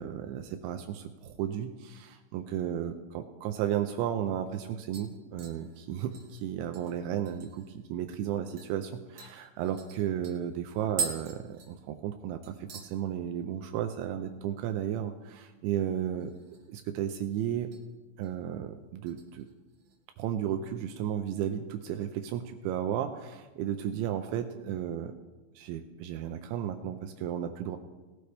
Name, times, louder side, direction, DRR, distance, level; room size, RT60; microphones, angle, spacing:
voice 1, 0.0-16.3 16.7-17.7 18.2-19.5 20.2-25.1 25.6-27.8, right 10 dB, 85° right, 7 dB, 2.7 m, -34 dB
sound 1, 4.3-4.6 4.9-7.8 8.1-8.2 8.6-8.7 9.2-12.2 12.4-12.9 13.3-13.7 13.9-14.0 16.1-16.8 17.1-17.8 18.2-18.5 19.1-20.0 20.3-20.4, right 6 dB, 55° right, 2.4 m, -41 dB
19.0 x 12.5 x 3.4 m, 1.2 s
omnidirectional pair, 5.8 m